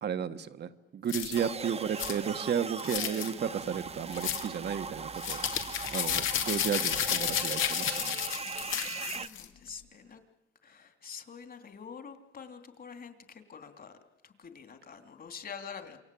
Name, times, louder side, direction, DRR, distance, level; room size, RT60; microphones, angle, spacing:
voice 1, 0.0-5.4 5.9-8.2, right 8 dB, 55° right, 10 dB, 1.4 m, -33 dB
sound 1, 1.1-1.4 2.0-2.2 2.8-3.3 4.1-4.5 5.2-9.4, left 10 dB, 85° left, 2.6 m, -32 dB
sound 2, 1.3-9.3, right 5 dB, 30° right, 1.2 m, -39 dB
voice 2, 6.4-6.8 8.6-10.2 10.6-13.9 14.2-16.0, left 6 dB, 50° left, 7 dB, 3.3 m, -47 dB
27.5 x 24.0 x 8.6 m, 0.98 s
cardioid pair, 90°, 20 cm